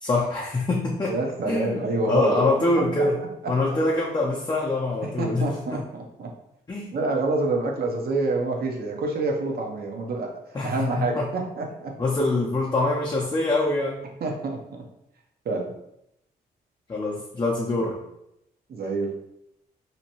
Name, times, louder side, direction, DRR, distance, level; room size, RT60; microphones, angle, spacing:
voice 1, 0.0-1.2 1.5-3.2 3.5-5.5 5.7-5.8 6.7-6.9 10.5-11.3 12.0-14.0 16.9-18.0, left 2 dB, 25° left, -3 dB, 0.5 m, -24 dB
voice 2, 1.0-2.5 3.0-3.8 5.0-6.3 6.9-10.4 10.6-11.9 14.2-14.8 15.4-15.7 18.7-19.2, right 3 dB, 55° right, 1 dB, 0.7 m, -27 dB
2.7 x 2.2 x 2.9 m, 0.82 s
supercardioid pair, 55°, 19 cm